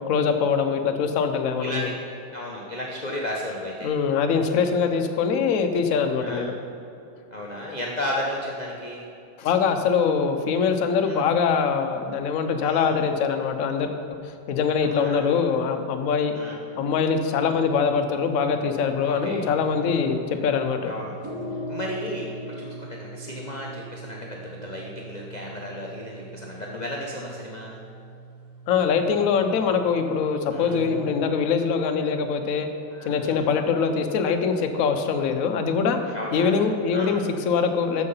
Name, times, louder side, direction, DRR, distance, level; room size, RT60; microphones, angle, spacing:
voice 1, 0.1-1.9 3.8-6.5 9.4-13.9 14.2-16.3 16.8-20.9 28.7-32.7 33.0-36.0 36.3-38.0, left 6 dB, 60° left, 6 dB, 0.9 m, -23 dB
voice 2, 1.6-2.0 2.3-3.9 6.2-6.5 7.3-9.1 11.0-11.2 12.6-12.9 14.8-15.2 16.3-16.6 19.0-19.4 20.9-21.2 21.7-27.8 30.5-30.8 32.9-33.5 36.1-36.5 36.9-37.2, left 1 dB, 35° left, -3 dB, 0.7 m, -34 dB
sound 1, 19.0-31.3, equal, 45° right, 1.4 m, -40 dB
13.0 x 4.8 x 5.5 m, 2.6 s
omnidirectional pair, 2.0 m